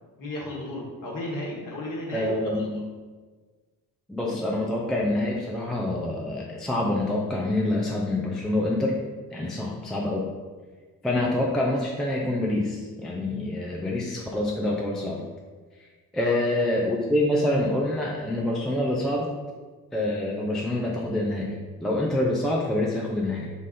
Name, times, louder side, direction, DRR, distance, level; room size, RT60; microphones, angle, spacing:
voice 1, 0.2-2.8 9.3-9.5 16.2-16.7, left 1 dB, 40° left, -3 dB, 1.4 m, -34 dB
voice 2, 2.1-2.7 4.1-9.0 9.3-10.3 11.0-15.3 16.1-19.3 19.9-21.5 21.8-23.5, left 1 dB, ahead, -3 dB, 0.4 m, -26 dB
3.9 x 2.4 x 4.2 m, 1.4 s
figure-of-eight pair, 45°, 48 cm